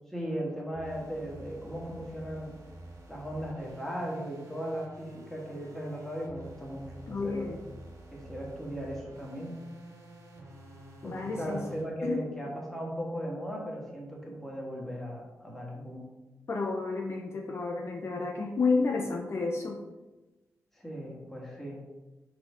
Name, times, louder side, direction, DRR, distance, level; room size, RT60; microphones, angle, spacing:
voice 1, 0.1-2.6 3.1-7.5 8.1-9.6 11.0-16.1 20.7-21.9, equal, 5° left, -3 dB, 1.9 m, -37 dB
sound 1, 0.7-11.9, right 1 dB, 60° right, 2.3 m, -49 dB
voice 2, 7.1-7.6 11.0-11.6 12.0-12.2 16.5-19.8, left 4 dB, 50° left, 1 dB, 0.8 m, -31 dB
5.8 x 4.9 x 5.1 m, 1.1 s
wide cardioid pair, 150°, 6 cm